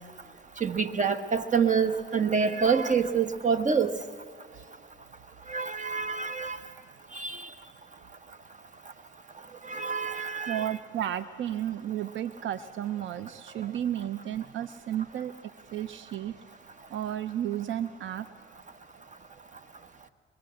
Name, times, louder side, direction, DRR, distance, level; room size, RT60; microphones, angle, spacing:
voice 1, 0.6-4.0 5.5-6.6 7.1-7.5 9.7-10.7, right 6 dB, 40° right, 9 dB, 1.5 m, -27 dB
voice 2, 10.5-15.3 15.7-16.3 16.9-18.3, right 11 dB, 70° right, 13 dB, 0.7 m, -33 dB
23.5 x 22.5 x 7.7 m, 2.2 s
cardioid pair, 90°, 20 cm